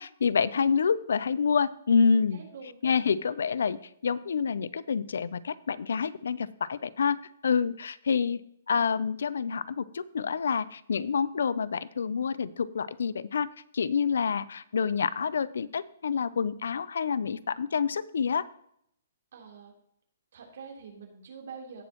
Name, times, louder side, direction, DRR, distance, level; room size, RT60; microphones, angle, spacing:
voice 1, 0.0-2.4 2.8-7.2 7.4-8.4 8.7-13.5 13.7-18.4, left 6 dB, 80° left, 18 dB, 0.5 m, -27 dB
voice 2, 2.3-2.8 19.3-19.7 20.3-21.8, right 5 dB, 60° right, -1 dB, 3.5 m, -45 dB
17.0 x 6.3 x 3.0 m, 0.70 s
hypercardioid pair, 170°, 0 cm